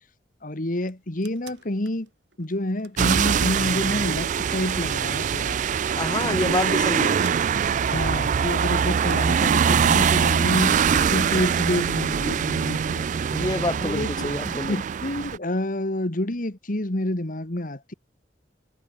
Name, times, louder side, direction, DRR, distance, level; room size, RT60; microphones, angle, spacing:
voice 1, 0.4-2.1 2.4-5.6 6.3-6.9 7.9-13.0 13.8-14.3 14.7-17.9, left 1 dB, 50° left, 1.8 m, -28 dB
sound 1, 0.8-2.9 3.3-4.3 4.6-4.9 5.9-6.8 7.2-7.7 9.0-10.5 10.8-12.0, right 3 dB, 70° right, 4.5 m, -45 dB
sound 2, 3.0-15.4, right 7 dB, 45° right, 0.3 m, -23 dB
voice 2, 6.0-7.2 13.3-14.8, left 1 dB, 25° left, 2.5 m, -27 dB
head